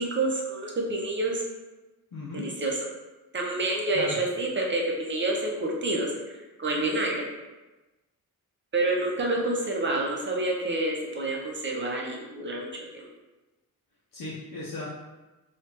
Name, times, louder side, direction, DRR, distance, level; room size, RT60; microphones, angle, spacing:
voice 1, 0.0-1.4 2.3-2.8 3.3-7.2 8.7-13.1, right 2 dB, 30° right, -2 dB, 0.6 m, -28 dB
voice 2, 2.1-2.4 3.9-4.2 14.1-14.9, left 2 dB, 60° left, -6 dB, 0.7 m, -36 dB
3.2 x 2.3 x 2.9 m, 1.1 s
wide cardioid pair, 115°, 37 cm